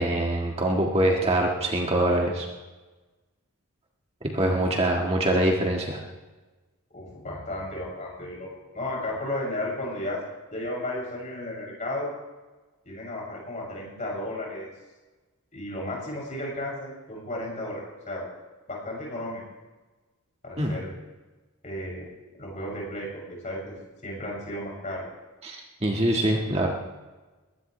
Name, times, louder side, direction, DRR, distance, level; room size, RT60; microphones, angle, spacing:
voice 1, 0.0-2.5 4.3-6.0 20.6-20.7 25.4-26.7, right 1 dB, 25° right, 0 dB, 1.7 m, -24 dB
voice 2, 4.4-5.1 6.9-8.5 8.7-10.2 10.5-12.1 12.9-14.7 15.5-18.3 18.7-19.4 20.4-20.9 21.6-22.1 22.4-23.7 24.0-25.1, left 1 dB, 35° left, -3 dB, 7.0 m, -34 dB
22.0 x 18.5 x 3.3 m, 1.2 s
head